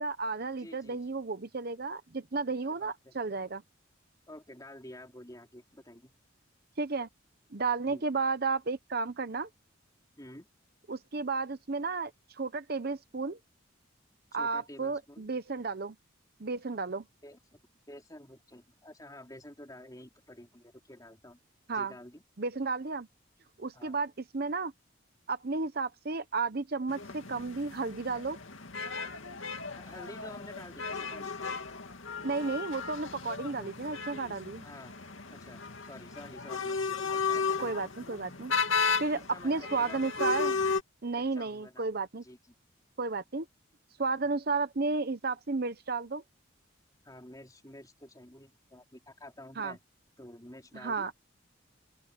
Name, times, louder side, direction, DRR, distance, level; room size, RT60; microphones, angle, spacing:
voice 1, 0.0-3.6 6.8-7.1 7.5-9.5 10.9-12.1 12.4-13.4 14.3-16.0 16.4-17.0 21.7-21.9 22.4-23.1 23.6-24.7 25.3-28.4 32.2-34.6 37.6-38.5 39.0-40.6 41.0-42.2 43.0-43.5 44.0-46.2 49.6-49.7 50.7-51.1, right 4 dB, 50° right, 0.8 m, -33 dB
voice 2, 0.6-1.0 2.6-3.1 4.3-6.1 7.9-8.0 10.2-10.5 14.3-15.3 17.2-17.6 17.9-21.4 21.7-22.2 23.7-24.0 29.7-31.3 34.6-34.9 35.3-36.7 37.3-37.8 39.1-40.6 41.1-41.9 42.2-42.4 47.0-49.8 50.2-51.1, left 1 dB, 20° left, 4.0 m, -49 dB
sound 1, 26.9-40.8, left 5 dB, 80° left, 2.3 m, -35 dB
open air
head